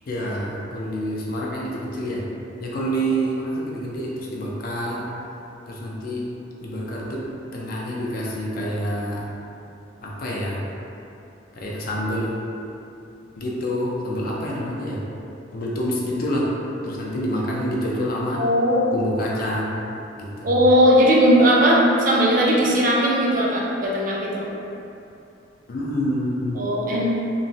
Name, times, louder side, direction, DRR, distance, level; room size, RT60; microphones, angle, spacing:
voice 1, 0.1-2.3 2.6-5.1 5.7-6.3 6.6-9.3 10.0-10.6 11.6-12.3 13.4-15.0 15.5-16.5 16.8-18.5 18.9-19.8 20.2-20.6 25.7-26.6, equal, 50° left, -4 dB, 0.4 m, -27 dB
voice 2, 18.4-18.9 20.4-24.5 26.5-27.1, equal, 45° right, -4 dB, 0.4 m, -18 dB
3.0 x 2.1 x 2.6 m, 2.7 s
head